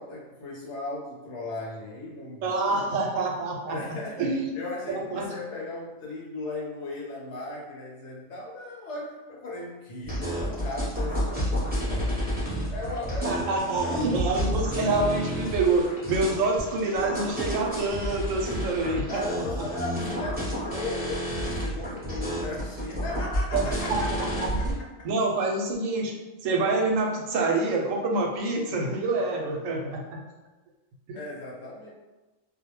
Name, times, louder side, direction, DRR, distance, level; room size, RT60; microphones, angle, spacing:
voice 1, 0.0-2.9 3.7-4.3 4.5-12.2 12.7-14.3 18.4-18.8 19.1-24.7 25.0-25.1 31.1-31.9, left 2 dB, 65° left, -4 dB, 1.0 m, -37 dB
voice 2, 2.4-3.8 4.2-4.6 4.9-5.3 13.2-19.2 23.5-24.0 24.3-24.8 25.0-26.1 26.4-30.2 31.1-31.2, right 3 dB, 90° right, 0 dB, 1.0 m, -27 dB
sound 1, 10.0-24.7, equal, 10° right, 0.8 m, -30 dB
2.4 x 2.1 x 3.0 m, 1.1 s
omnidirectional pair, 1.3 m